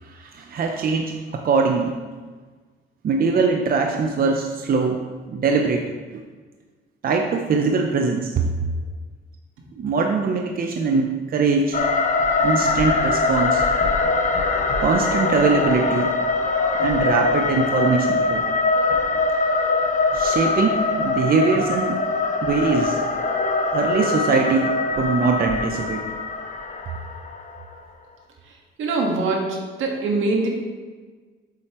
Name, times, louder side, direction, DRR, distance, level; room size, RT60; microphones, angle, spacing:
voice 1, 0.0-2.0 3.0-5.0 5.3-5.9 7.0-8.4 9.8-11.8 12.4-13.6 14.8-16.1 16.8-18.5 20.1-22.0 22.4-23.0 23.7-26.0, right 4 dB, 50° right, 3 dB, 0.7 m, -22 dB
sound 1, 11.7-27.7, left 3 dB, 40° left, 0.9 m, -22 dB
voice 2, 28.8-30.5, right 3 dB, 80° right, 0 dB, 1.6 m, -23 dB
7.7 x 7.6 x 3.0 m, 1.4 s
cardioid pair, 90°, 20 cm